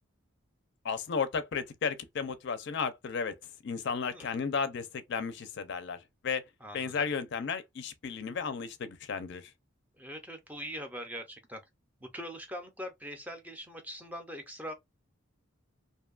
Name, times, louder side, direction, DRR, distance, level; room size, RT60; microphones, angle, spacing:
voice 1, 0.8-3.4 3.6-6.4 6.7-9.5, left 5 dB, 55° left, 0.4 m, -34 dB
voice 2, 6.6-7.1 10.0-11.6 12.0-14.7, equal, 10° right, 0.5 m, -42 dB
2.6 x 2.2 x 2.3 m
head